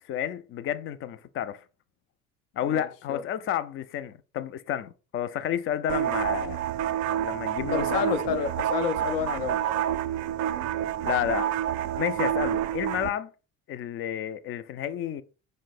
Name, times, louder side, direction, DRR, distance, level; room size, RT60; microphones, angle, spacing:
voice 1, 0.1-1.6 2.6-6.6 7.1-8.1 11.0-11.5 12.0-13.3 13.7-15.2, left 10 dB, 35° left, 0.4 m, -31 dB
voice 2, 2.6-3.2 7.7-9.8, left 7 dB, 70° left, 0.7 m, -30 dB
sound 1, 5.9-13.1, right 11 dB, 45° right, 0.4 m, -28 dB
4.4 x 2.1 x 4.2 m
hypercardioid pair, 65°, 41 cm